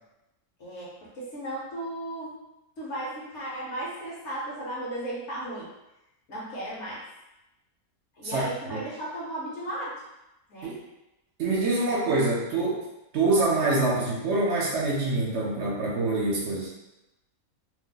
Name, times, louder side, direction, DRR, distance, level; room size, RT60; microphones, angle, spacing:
voice 1, 0.6-2.4 2.8-5.7 6.3-7.1 8.1-10.0 10.5-10.7, right 1 dB, 60° left, -5 dB, 1.1 m, -35 dB
voice 2, 11.4-12.8 13.1-16.7, right 2 dB, 60° right, -4 dB, 0.9 m, -25 dB
2.7 x 2.1 x 3.8 m, 0.93 s
omnidirectional pair, 1.4 m